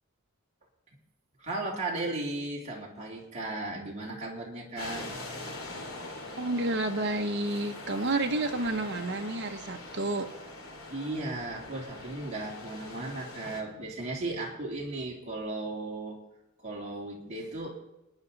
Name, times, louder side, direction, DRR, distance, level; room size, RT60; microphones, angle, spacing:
voice 1, 1.4-5.5 10.9-16.2 16.6-17.7, right 2 dB, 30° right, -4 dB, 3.2 m, -36 dB
sound 1, 4.8-13.6, left 2 dB, 80° left, 2.5 m, -42 dB
voice 2, 6.4-10.3, right 2 dB, 55° right, 4 dB, 1.3 m, -30 dB
29.0 x 10.0 x 4.1 m, 0.90 s
head